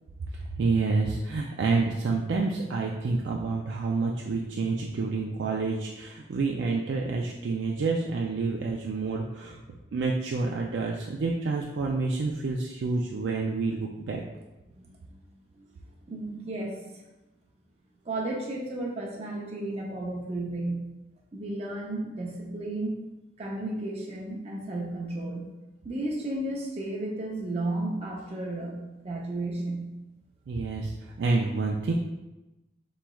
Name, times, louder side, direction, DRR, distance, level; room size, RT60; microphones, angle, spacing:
voice 1, 0.3-9.6 9.9-14.2 30.5-31.9, right 3 dB, 80° right, -1 dB, 0.4 m, -28 dB
voice 2, 14.7-15.1 15.6-15.7 16.1-16.8 18.0-20.8 21.3-23.0 23.4-25.4 25.8-29.9, right 2 dB, 35° right, -3 dB, 0.6 m, -33 dB
5.6 x 3.1 x 2.3 m, 1.0 s
head